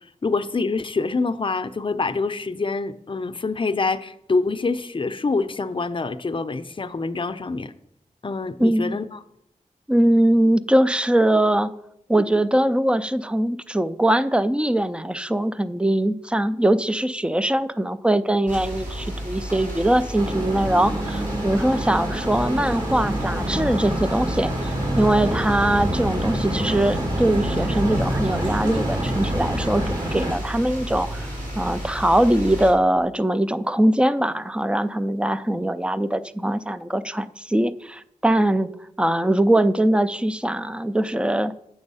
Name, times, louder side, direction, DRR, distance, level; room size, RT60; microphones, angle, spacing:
voice 1, 0.2-7.7 8.2-9.2, left 3 dB, 40° left, 11 dB, 0.6 m, -26 dB
voice 2, 8.6-9.0 9.9-11.7 12.1-31.3 31.6-38.7 39.0-41.5, right 1 dB, 10° right, 14 dB, 0.4 m, -21 dB
sound 1, 18.5-32.7, equal, 70° right, 3.1 m, -32 dB
sound 2, 20.2-30.3, right 1 dB, 30° right, 1.5 m, -27 dB
sound 3, 24.6-29.9, right 3 dB, 90° right, 0.9 m, -35 dB
7.9 x 6.2 x 5.5 m, 0.78 s
wide cardioid pair, 60°, 14 cm